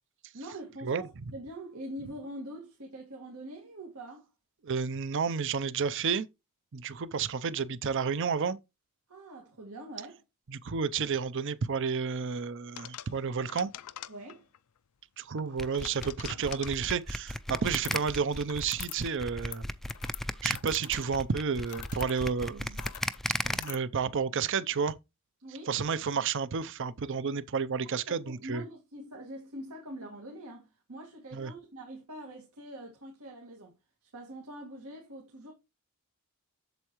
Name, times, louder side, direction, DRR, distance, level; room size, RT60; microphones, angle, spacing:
voice 1, 0.3-4.3 9.1-10.2 14.1-14.5 25.4-25.7 28.1-33.7 34.0-35.5, right 1 dB, 85° right, 1.9 m, -44 dB
voice 2, 4.6-6.3 6.7-8.6 10.5-13.7 15.2-19.6 20.4-22.8 23.4-25.0 25.7-28.6 31.3-31.5, right 6 dB, 55° right, 0.6 m, -31 dB
sound 1, 12.8-14.6 15.4-16.8 17.6-18.2 18.5-19.1 19.3-23.8, left 13 dB, 85° left, 0.5 m, -45 dB
sound 2, 15.6-23.6, left 1 dB, ahead, 0.3 m, -35 dB
8.0 x 7.2 x 3.0 m
head